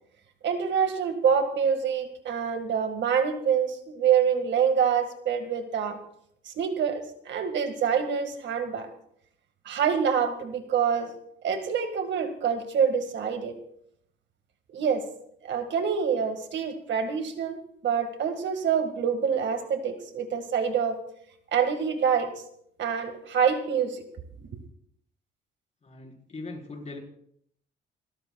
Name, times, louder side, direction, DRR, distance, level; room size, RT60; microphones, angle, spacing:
voice 1, 0.4-6.0 6.5-8.9 9.7-11.1 11.4-13.6 14.7-15.0 15.4-21.0 21.5-22.3 22.8-24.0 24.5-24.6, right 7 dB, 65° right, 7 dB, 1.9 m, -26 dB
voice 2, 25.8-27.0, left 2 dB, 35° left, 0 dB, 4.5 m, -40 dB
28.5 x 13.5 x 2.3 m, 0.69 s
cardioid pair, 90°, 20 cm